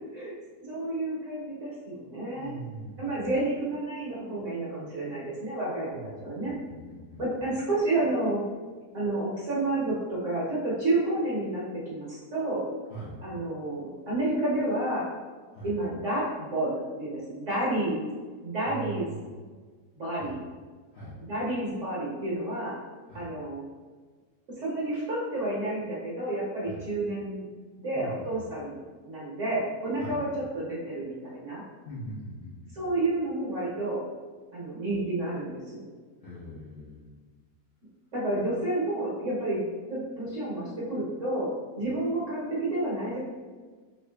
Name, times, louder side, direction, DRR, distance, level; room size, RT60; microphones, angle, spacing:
voice 1, 0.6-2.6 3.0-6.6 7.2-8.5 8.9-12.7 13.2-15.1 15.6-18.0 18.4-19.1 19.9-20.4 21.3-22.8 23.1-23.6 24.6-27.4 27.8-31.6 32.7-34.0 34.5-35.9 38.1-43.2, right 2 dB, 55° right, -7 dB, 1.1 m, -30 dB
voice 2, 2.3-3.4 5.9-7.5 12.9-13.2 15.5-15.8 18.6-19.4 20.1-20.4 20.9-21.2 23.1-23.3 26.6-26.9 27.9-28.4 30.0-30.2 31.8-32.9 36.2-37.2, right 1 dB, 60° left, -8 dB, 0.7 m, -42 dB
3.1 x 2.5 x 3.3 m, 1.5 s
omnidirectional pair, 1.8 m